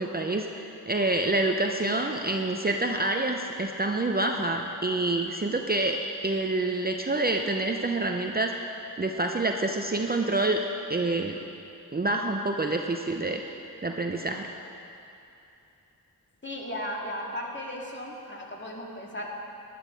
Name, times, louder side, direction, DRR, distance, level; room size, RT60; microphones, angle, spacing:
voice 1, 0.0-6.0 6.2-8.5 9.0-10.6 10.9-11.4 11.9-13.4 13.8-14.5, right 2 dB, 25° right, 3 dB, 0.7 m, -27 dB
voice 2, 16.4-19.3, equal, 30° left, -2 dB, 2.2 m, -36 dB
12.0 x 11.0 x 5.1 m, 2.8 s
cardioid pair, 55°, 38 cm